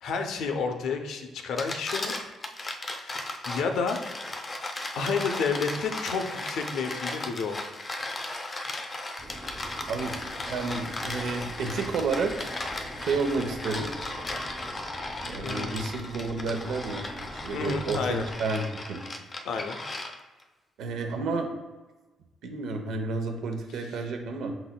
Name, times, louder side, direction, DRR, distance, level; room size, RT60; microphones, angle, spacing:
voice 1, 0.0-2.2 3.0-4.0 4.9-7.7 15.4-15.8 17.5-18.2 19.4-19.8, left 5 dB, 75° left, 5 dB, 0.6 m, -30 dB
sound 1, 1.4-20.4, left 2 dB, 35° left, 0.6 m, -36 dB
sound 2, 9.2-18.4, right 1 dB, 25° right, 1.3 m, -45 dB
voice 2, 9.9-12.6 13.0-13.9 15.2-17.1 17.3-19.0 20.8-21.5 22.4-24.5, right 3 dB, 80° right, 4 dB, 0.8 m, -31 dB
6.0 x 4.0 x 2.2 m, 1.2 s
cardioid pair, 90°, 0 cm